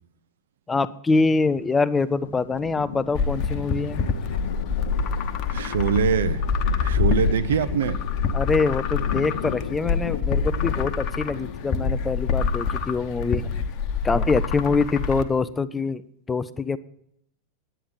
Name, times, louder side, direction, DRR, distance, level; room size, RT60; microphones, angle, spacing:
voice 1, 0.7-4.0 8.3-13.5 14.0-16.0 16.3-16.8, left 4 dB, 15° left, 15 dB, 0.5 m, -24 dB
Thunder, 1.5-13.8, left 7 dB, 65° left, 0.6 m, -37 dB
sound 1, 3.1-15.2, left 5 dB, 40° left, 1.0 m, -26 dB
voice 2, 5.5-6.4 6.7-8.0, right 7 dB, 60° right, 11 dB, 0.7 m, -24 dB
10.0 x 9.4 x 5.6 m, 0.72 s
figure-of-eight pair, 90°, 0 cm